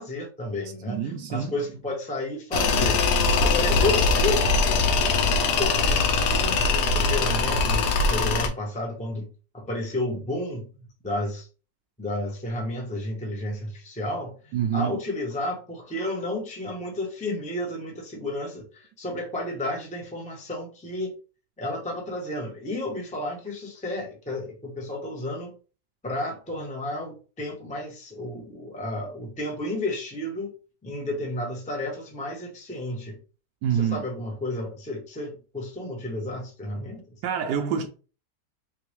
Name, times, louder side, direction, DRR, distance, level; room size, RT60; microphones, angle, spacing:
voice 1, 0.0-3.0 3.4-11.5 12.0-21.2 21.6-25.6 26.0-30.5 30.8-33.2 33.7-37.0, left 1 dB, 5° left, 0.6 m, -32 dB
voice 2, 0.9-1.6 14.5-15.0 33.6-34.0 37.2-37.9, right 8 dB, 85° right, 1.2 m, -26 dB
Tools, 2.5-8.5, left 4 dB, 80° left, 1.3 m, -22 dB
3.9 x 3.5 x 3.1 m
omnidirectional pair, 1.8 m